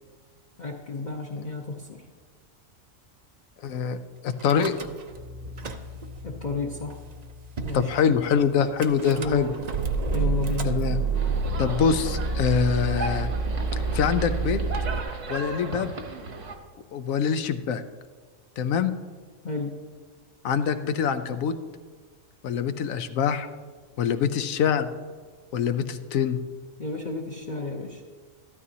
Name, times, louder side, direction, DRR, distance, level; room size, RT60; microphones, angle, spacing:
voice 1, 0.6-2.0 6.2-7.0 7.6-8.1 9.0-9.5 10.1-10.7 19.4-19.7 26.8-28.0, left 4 dB, 40° left, 0 dB, 0.8 m, -31 dB
voice 2, 3.6-4.0 4.2-4.7 7.7-9.5 10.6-11.0 11.6-13.3 13.7-14.6 15.3-15.9 16.9-17.8 18.6-18.9 20.4-21.5 22.4-23.5 24.0-24.9 25.5-26.4, left 7 dB, 85° left, 10 dB, 1.0 m, -24 dB
Car / Engine starting / Idling, 4.4-5.2 5.4-6.2 6.9-7.0 7.2-7.3 7.6-7.8 8.8-15.0, right 4 dB, 50° right, 0.5 m, -28 dB
sound 1, 5.1-10.3, left 3 dB, 80° right, 1.8 m, -45 dB
sound 2, 11.1-16.5, right 3 dB, 65° right, 1.5 m, -36 dB
13.5 x 12.5 x 2.8 m, 1.5 s
omnidirectional pair, 1.4 m